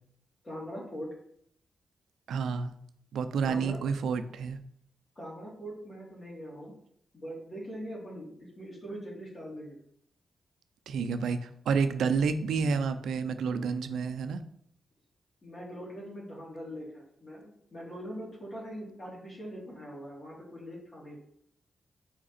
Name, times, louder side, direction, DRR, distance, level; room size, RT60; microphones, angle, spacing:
voice 1, 0.4-1.1 3.4-3.8 5.2-6.7 7.1-9.8 15.4-21.2, equal, 40° left, -4 dB, 2.7 m, -42 dB
voice 2, 2.3-2.7 3.1-4.6 10.9-14.4, right 5 dB, 85° right, 9 dB, 0.5 m, -29 dB
5.2 x 5.0 x 4.2 m, 0.69 s
cardioid pair, 75°, 0 cm